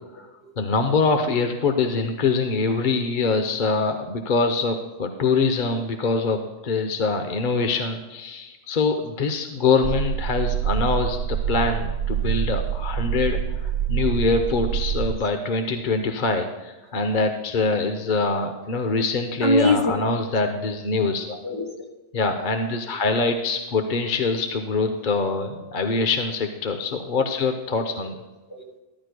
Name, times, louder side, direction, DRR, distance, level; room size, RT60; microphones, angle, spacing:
voice 1, 0.6-21.4 22.1-28.1, left 4 dB, 45° left, 5 dB, 0.8 m, -24 dB
sound 1, 9.8-15.2, right 8 dB, 85° right, 1.1 m, -26 dB
voice 2, 19.4-20.0 21.2-21.9 27.2-27.3 27.8-27.9 28.5-28.8, left 1 dB, 20° left, 0 dB, 1.4 m, -24 dB
14.0 x 12.5 x 2.2 m, 1.2 s
omnidirectional pair, 1.3 m